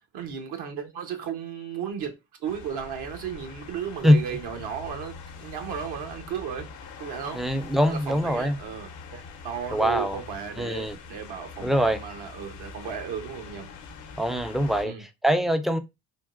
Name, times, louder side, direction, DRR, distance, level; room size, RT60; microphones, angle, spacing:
voice 1, 0.1-6.7 7.0-7.4 7.9-13.7 14.8-15.0, right 8 dB, 70° right, 0.9 m, -35 dB
sound 1, 2.4-14.8, left 4 dB, 80° left, 0.8 m, -43 dB
voice 2, 7.3-8.6 9.7-10.2 10.6-11.0 11.6-12.0 14.2-15.8, equal, ahead, 0.3 m, -23 dB
3.6 x 2.2 x 2.4 m
supercardioid pair, 65°, 42 cm